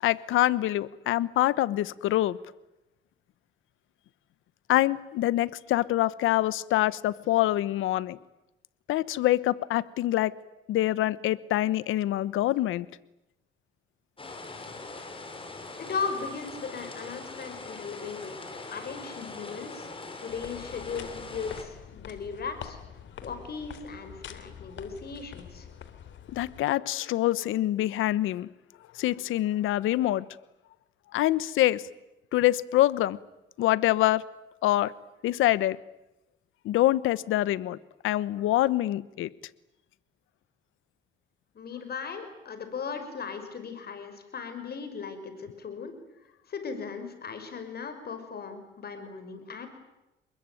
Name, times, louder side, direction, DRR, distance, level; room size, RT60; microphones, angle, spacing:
voice 1, 0.0-2.4 4.7-8.2 8.9-10.3 10.7-12.9 26.3-28.5 28.9-30.2 31.1-31.8 32.3-33.2 33.6-34.2 34.6-34.9 35.2-35.8 36.6-37.8 38.0-39.3, left 15 dB, 85° left, 18 dB, 1.1 m, -25 dB
sound 1, 14.2-21.6, left 3 dB, 25° left, 6.2 m, -42 dB
voice 2, 15.8-18.4 18.7-19.9 20.2-22.8 23.2-25.7 41.5-46.0 46.5-49.7, left 5 dB, 50° left, 8 dB, 5.7 m, -37 dB
sound 2, 20.3-26.6, left 9 dB, 70° left, 3.1 m, -45 dB
29.0 x 21.5 x 9.3 m, 0.95 s
cardioid pair, 90°, 20 cm